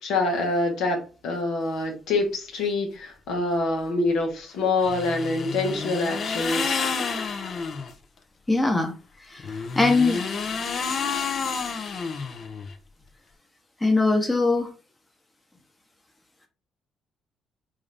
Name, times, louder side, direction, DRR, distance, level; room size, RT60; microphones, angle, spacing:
voice 1, 0.0-6.8, left 2 dB, 80° left, 1.0 m, -26 dB
sound 1, 4.8-7.9 9.4-12.7, left 5 dB, 55° left, 0.5 m, -29 dB
voice 2, 8.5-8.9 9.3-10.4 13.8-14.7, left 3 dB, 20° left, 1.0 m, -22 dB
3.8 x 2.6 x 3.2 m
supercardioid pair, 65°, 0 cm